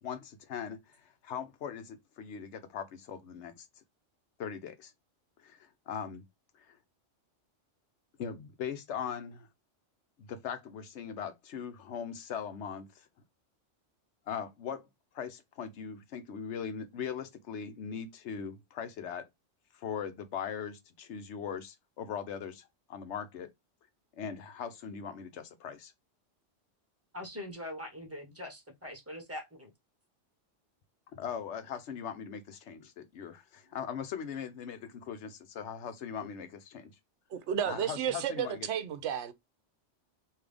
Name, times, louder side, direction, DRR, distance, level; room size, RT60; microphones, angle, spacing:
voice 1, 0.0-3.7 4.4-4.9 5.4-6.2 6.6-6.8 8.2-9.5 10.2-13.1 14.3-14.8 15.1-19.2 19.7-23.5 24.2-25.9 31.1-36.9 37.7-38.7, left 7 dB, 75° left, 1.0 m, -40 dB
voice 2, 27.1-29.7 36.2-36.3, left 1 dB, 10° right, 1.1 m, -42 dB
voice 3, 37.3-39.3, right 9 dB, 70° right, 0.9 m, -32 dB
3.6 x 2.7 x 3.3 m
omnidirectional pair, 1.2 m